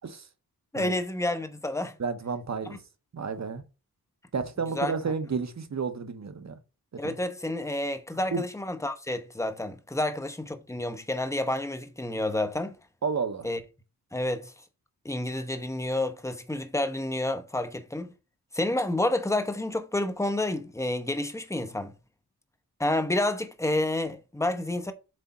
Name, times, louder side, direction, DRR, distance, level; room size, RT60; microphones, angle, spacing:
voice 1, 0.7-1.9 4.7-4.9 7.0-12.7 13.4-13.6 14.1-14.5 15.0-18.1 18.5-21.9 22.8-24.9, left 1 dB, 10° left, 0.8 m, -29 dB
voice 2, 2.0-2.8 3.1-3.6 4.3-6.6 7.0-7.2 8.3-8.4 13.0-13.5, right 5 dB, 45° right, 0.9 m, -31 dB
7.8 x 3.5 x 4.1 m
wide cardioid pair, 100°, 37 cm